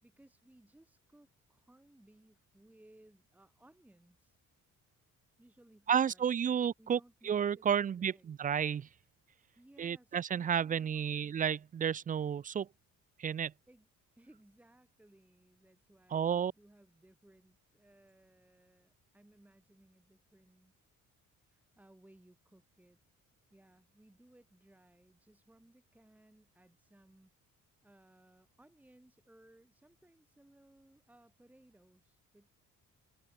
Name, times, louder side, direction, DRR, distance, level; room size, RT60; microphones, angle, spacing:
voice 1, 0.0-4.4 5.4-8.3 9.6-11.4 13.7-13.9 14.2-20.7 21.4-23.0 23.5-27.3 27.8-32.5, right 1 dB, 5° right, 2.6 m, -63 dB
voice 2, 5.9-7.0 7.2-8.9 9.8-12.7 13.2-13.5 16.1-16.5, right 8 dB, 25° right, 0.4 m, -31 dB
open air
cardioid pair, 165°, 32 cm